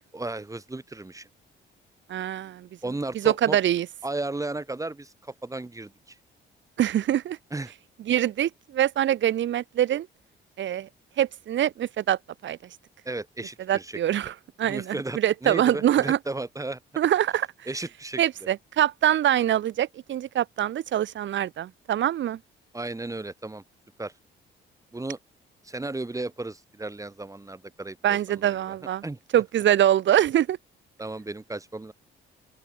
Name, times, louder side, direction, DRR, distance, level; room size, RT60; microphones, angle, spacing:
voice 1, 0.1-1.3 2.8-3.6 4.0-6.2 7.5-7.7 13.1-14.0 14.6-16.8 17.7-18.2 22.7-23.6 24.0-24.1 24.9-25.2 25.6-28.7 29.0-29.2 31.0-31.9, right 2 dB, 15° right, 3.8 m, -34 dB
voice 2, 2.1-2.7 3.1-3.9 6.8-7.4 8.1-10.1 10.6-10.9 11.2-12.6 13.7-16.2 17.0-17.5 18.2-22.4 28.0-29.0 29.3-30.6, right 11 dB, 70° right, 1.9 m, -24 dB
open air
cardioid pair, 90°, 20 cm